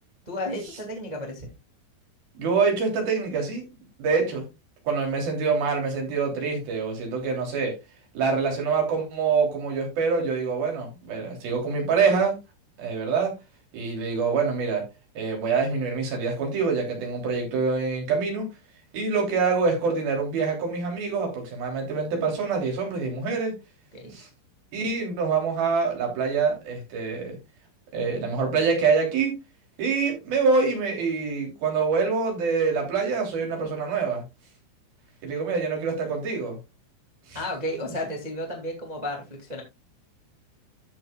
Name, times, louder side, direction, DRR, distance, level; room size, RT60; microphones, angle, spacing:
voice 1, 0.2-1.5 23.9-24.1 37.3-39.6, left 1 dB, 70° right, 1 dB, 0.4 m, -33 dB
voice 2, 2.3-3.6 4.0-4.4 4.8-7.8 8.1-12.4 12.8-13.3 13.7-14.8 15.1-18.5 18.9-23.5 24.1-24.3 24.7-27.4 27.9-29.4 29.8-34.2 35.2-36.6 37.3-37.4, right 5 dB, 50° right, 1 dB, 4.9 m, -25 dB
13.5 x 7.4 x 2.4 m, 0.23 s
omnidirectional pair, 5.8 m